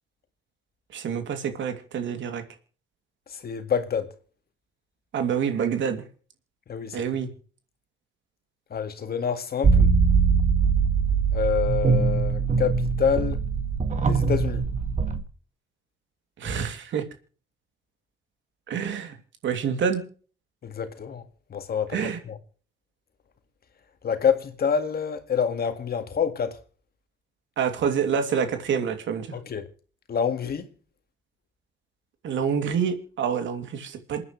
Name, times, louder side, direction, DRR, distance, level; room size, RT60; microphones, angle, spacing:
voice 1, 0.9-2.4 5.1-6.0 6.9-7.3 16.4-17.0 18.7-19.2 19.4-20.0 21.9-22.2 27.6-29.3 32.2-34.2, right 7 dB, 70° right, 2.8 m, -27 dB
voice 2, 3.3-4.1 6.7-7.0 8.7-9.9 11.3-13.4 14.0-14.6 20.6-21.2 21.5-22.4 24.0-26.6 29.3-29.7 30.1-30.6, left 7 dB, 50° left, 2.0 m, -27 dB
sound 1, 9.6-15.2, right 5 dB, 40° right, 2.0 m, -22 dB
27.5 x 9.6 x 3.2 m
cardioid pair, 90°, 20 cm